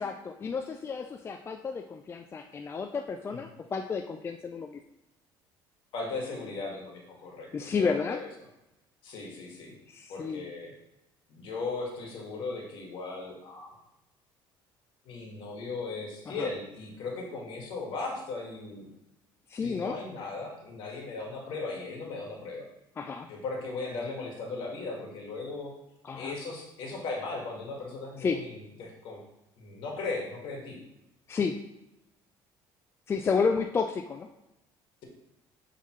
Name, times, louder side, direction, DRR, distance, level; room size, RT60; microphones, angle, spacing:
voice 1, 0.0-4.8 7.5-8.2 9.9-10.4 16.3-16.5 19.5-20.0 23.0-23.3 26.0-26.3 28.2-28.4 31.3-31.6 33.1-34.3, left 5 dB, 25° left, 5 dB, 0.4 m, -31 dB
voice 2, 5.9-8.3 9.0-9.7 10.1-10.7 11.3-13.7 15.0-18.9 19.6-22.7 23.3-25.7 26.2-29.2 29.6-30.8 33.3-33.4, left 3 dB, 65° left, -1 dB, 2.0 m, -37 dB
9.4 x 3.8 x 3.2 m, 0.92 s
cardioid pair, 120°, 9 cm